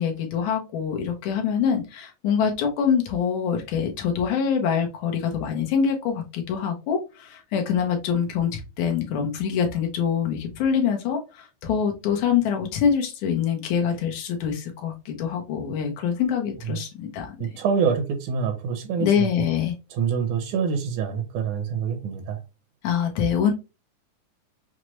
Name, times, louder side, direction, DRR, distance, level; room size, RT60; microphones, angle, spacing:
voice 1, 0.0-17.4 19.0-19.7 22.8-23.5, left 7 dB, 75° left, 2.1 m, -25 dB
voice 2, 17.4-19.3 19.9-22.4, right 6 dB, 75° right, 2.1 m, -26 dB
6.1 x 2.1 x 3.0 m
omnidirectional pair, 3.6 m